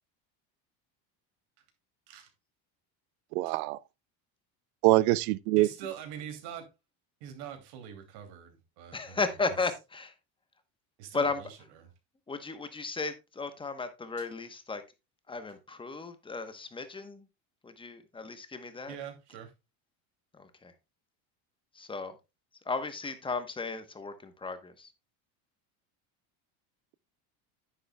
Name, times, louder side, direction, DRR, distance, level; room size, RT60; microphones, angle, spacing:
voice 1, 3.3-3.8 4.8-5.7, right 19 dB, 80° right, 0.6 m, -24 dB
voice 2, 5.6-6.7 7.2-9.6 11.0-11.9 14.2-14.3 18.9-19.5, right 8 dB, 65° right, 2.8 m, -44 dB
voice 3, 8.9-10.1 11.1-11.4 12.3-14.8 15.3-17.3 17.6-19.0 20.3-20.7 21.7-22.2 22.7-24.9, left 4 dB, 10° left, 1.0 m, -35 dB
9.8 x 9.7 x 2.2 m
cardioid pair, 155°, 42 cm